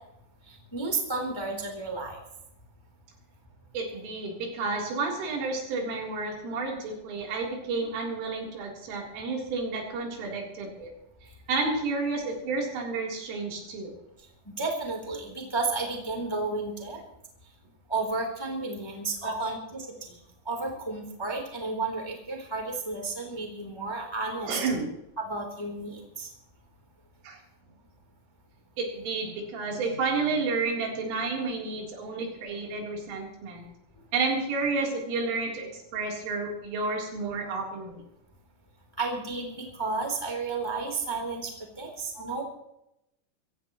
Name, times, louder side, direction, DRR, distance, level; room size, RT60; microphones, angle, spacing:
voice 1, 0.5-2.2 14.6-17.0 17.9-19.9 20.4-24.6 25.2-26.3 39.0-41.5 41.8-42.4, right 3 dB, 5° left, 1 dB, 2.2 m, -32 dB
voice 2, 3.7-10.9 11.5-13.9 19.2-19.4 24.5-24.9 27.2-27.4 28.8-33.6 34.1-38.0 42.1-42.2, right 3 dB, 90° right, -1 dB, 6.2 m, -31 dB
25.5 x 15.5 x 3.1 m, 0.83 s
omnidirectional pair, 5.5 m